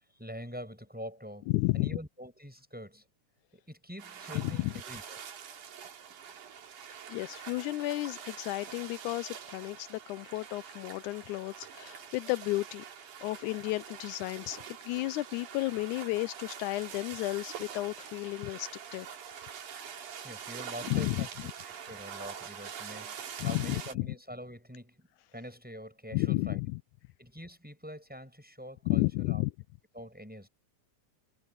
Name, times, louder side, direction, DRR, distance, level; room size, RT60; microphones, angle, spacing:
voice 1, 0.2-3.0 3.5-5.2 20.2-21.3 21.7-26.6 27.2-29.4 29.9-30.5, equal, 5° right, 7.1 m, -45 dB
voice 2, 1.5-1.9 4.3-4.7 7.1-12.8 13.2-19.1 20.9-21.3 23.4-24.2 26.1-26.8 28.9-29.5, left 20 dB, 85° left, 2.0 m, -32 dB
sound 1, 4.0-23.9, right 8 dB, 85° right, 3.7 m, -45 dB
omnidirectional pair, 3.5 m